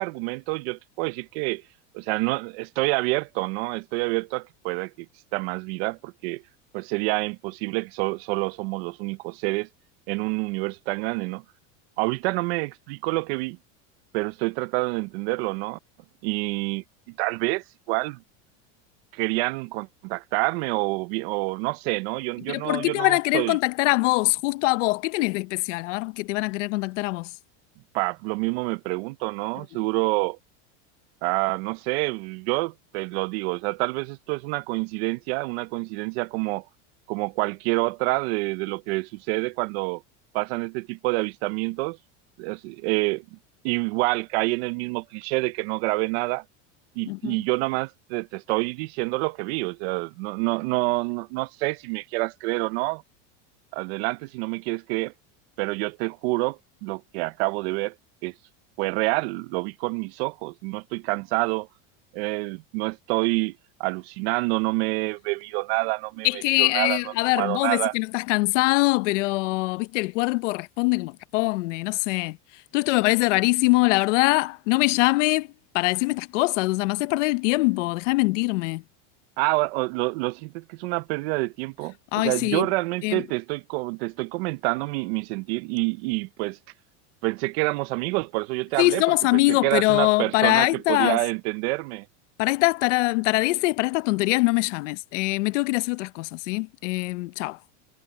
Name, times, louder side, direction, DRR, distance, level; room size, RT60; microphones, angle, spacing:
voice 1, 0.0-1.6 1.9-5.1 5.3-6.4 6.7-9.7 10.1-11.4 12.0-13.6 14.1-15.8 16.2-18.2 19.1-23.6 27.9-30.4 31.2-36.6 37.1-40.0 40.3-42.0 42.4-43.4 43.6-46.4 47.0-53.0 53.7-55.1 55.6-57.9 58.2-58.3 58.8-61.7 62.1-66.3 66.6-67.0 67.4-67.9 79.4-86.6 87.2-89.0 89.3-92.1, right 24 dB, 55° right, 0.6 m, -27 dB
voice 2, 22.5-27.3 47.0-47.4 66.2-75.5 75.7-78.8 82.1-82.7 83.0-83.2 88.8-91.2 92.4-97.6, left 22 dB, 75° left, 0.9 m, -23 dB
supercardioid pair, 165°, 38 cm